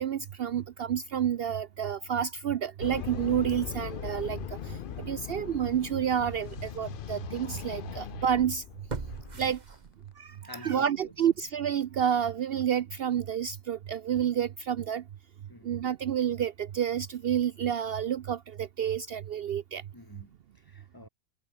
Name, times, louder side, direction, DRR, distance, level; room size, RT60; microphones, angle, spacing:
voice 1, 0.0-4.4 4.7-8.6 9.4-9.6 10.2-10.4 10.6-15.0 15.6-19.8, right 9 dB, 85° right, 0.5 m, -29 dB
sound 1, 2.8-9.5, left 9 dB, 80° left, 0.4 m, -40 dB
voice 2, 4.8-5.1 7.9-8.1 9.3-9.5 10.4-11.1 15.5-15.7 19.9-21.1, left 1 dB, 15° left, 1.6 m, -47 dB
sound 2, 5.6-5.7 6.3-6.4 8.9-10.3 10.7-10.8, right 4 dB, 30° right, 1.3 m, -40 dB
omnidirectional pair, 1.7 m